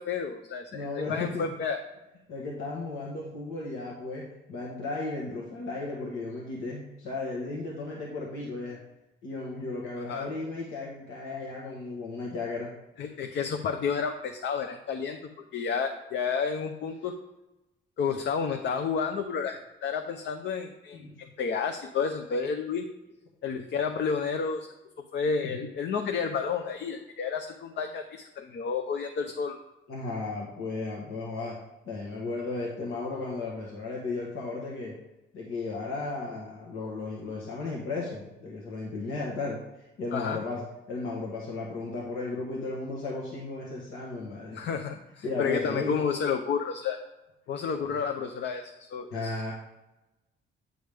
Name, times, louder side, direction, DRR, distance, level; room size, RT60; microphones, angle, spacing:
voice 1, 0.0-1.8 10.1-10.3 13.0-17.1 18.0-22.8 23.4-24.7 25.1-29.6 40.1-40.4 44.5-47.0 47.5-49.5, left 6 dB, 65° left, 5 dB, 0.7 m, -31 dB
voice 2, 0.7-1.5 2.3-4.2 4.5-8.8 9.2-12.7 20.9-21.2 25.5-25.6 29.9-31.5 31.8-35.0 35.3-39.6 40.0-40.6 40.9-44.6 45.2-45.9 49.1-49.5, left 3 dB, 90° left, -3 dB, 1.4 m, -35 dB
9.2 x 5.1 x 3.4 m, 0.98 s
cardioid pair, 90°, 20 cm